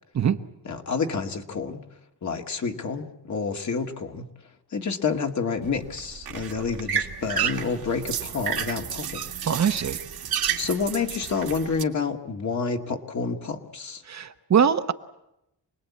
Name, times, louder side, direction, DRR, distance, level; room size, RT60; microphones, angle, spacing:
voice 1, 0.7-1.8 2.2-4.3 4.7-9.3 10.6-14.0, left 5 dB, 45° left, 4 dB, 2.0 m, -29 dB
sound 1, 5.6-11.8, right 8 dB, 70° right, 2.0 m, -31 dB
voice 2, 9.4-10.0 14.0-14.9, right 7 dB, 45° right, 8 dB, 1.0 m, -22 dB
27.5 x 20.0 x 8.5 m, 0.88 s
wide cardioid pair, 130°, 39 cm